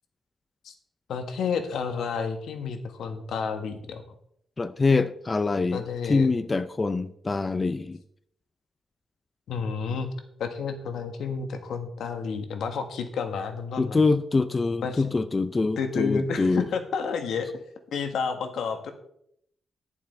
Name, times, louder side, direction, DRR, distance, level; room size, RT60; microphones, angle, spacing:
voice 1, 1.1-4.0 5.7-6.3 9.5-10.1 10.4-14.0 14.8-15.1 15.8-17.5 17.9-18.9, left 5 dB, 80° left, 7 dB, 1.5 m, -30 dB
voice 2, 4.6-5.8 6.1-8.0 13.8-16.7, left 3 dB, 20° left, 12 dB, 0.4 m, -24 dB
11.5 x 7.2 x 4.3 m, 0.71 s
wide cardioid pair, 165°, 0 cm